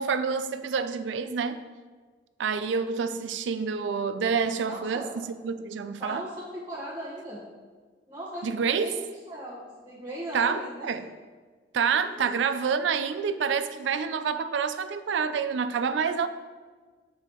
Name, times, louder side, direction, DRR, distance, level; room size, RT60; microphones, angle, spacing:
voice 1, 0.0-1.6 2.4-6.2 8.4-9.0 10.3-11.1 11.7-16.3, right 6 dB, 75° right, 11 dB, 0.4 m, -28 dB
voice 2, 4.7-5.1 6.0-7.4 8.1-9.0 9.3-11.1 11.9-12.1, equal, 25° right, -8 dB, 1.1 m, -38 dB
6.7 x 5.0 x 3.0 m, 1.4 s
head